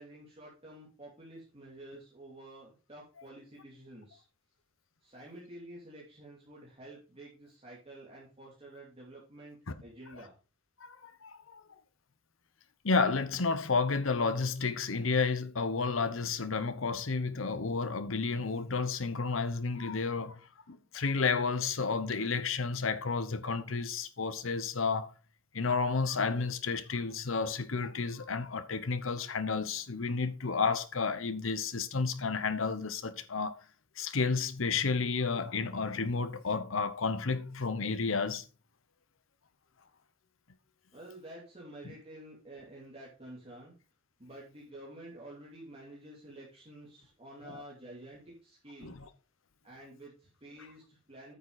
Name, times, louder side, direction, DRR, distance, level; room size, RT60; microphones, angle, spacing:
voice 1, 0.0-4.2 5.0-10.3 40.9-43.8 44.2-48.9 49.6-51.4, right 1 dB, 30° right, 2.8 m, -50 dB
voice 2, 10.8-11.6 12.8-20.4 20.7-25.1 25.5-33.6 34.0-38.4 47.5-47.6 48.8-49.1, left 4 dB, 80° left, 1.0 m, -31 dB
9.3 x 7.1 x 4.1 m
head